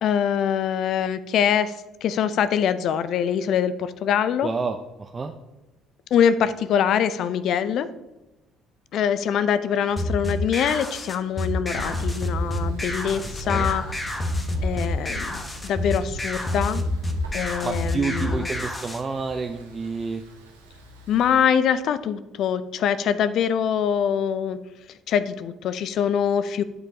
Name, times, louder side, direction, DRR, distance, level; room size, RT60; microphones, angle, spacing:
voice 1, 0.0-1.7 2.0-4.5 6.1-7.9 8.9-13.8 14.6-15.4 15.6-16.8 17.3-18.5 21.1-24.6 25.1-26.6, left 8 dB, 55° left, 14 dB, 0.5 m, -23 dB
voice 2, 4.4-5.3 13.4-13.7 17.6-20.2, right 4 dB, 30° right, 4 dB, 0.6 m, -29 dB
sound 1, 10.0-19.0, left 1 dB, 20° left, 1.2 m, -28 dB
Thunder, 11.7-21.5, right 1 dB, 85° right, 1.1 m, -41 dB
12.0 x 5.3 x 2.8 m, 1.0 s
figure-of-eight pair, 50°, 0 cm